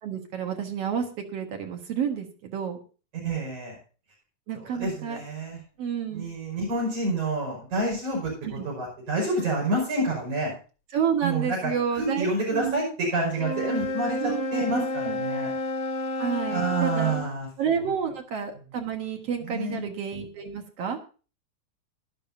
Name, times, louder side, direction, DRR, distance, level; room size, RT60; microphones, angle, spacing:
voice 1, 0.0-1.1 1.3-2.8 4.5-5.2 5.8-6.3 8.4-8.5 10.9-12.8 14.2-15.2 16.2-17.2 17.6-21.0, right 7 dB, 55° right, 4 dB, 2.4 m, -30 dB
voice 2, 3.2-3.8 4.6-5.6 6.1-10.5 11.2-15.5 16.5-17.9 19.4-19.8, right 2 dB, 75° right, -3 dB, 7.0 m, -28 dB
Wind instrument woodwind instrument, 13.3-17.3, left 2 dB, 60° left, 0.8 m, -30 dB
17.0 x 11.5 x 2.7 m, 0.35 s
omnidirectional pair, 3.5 m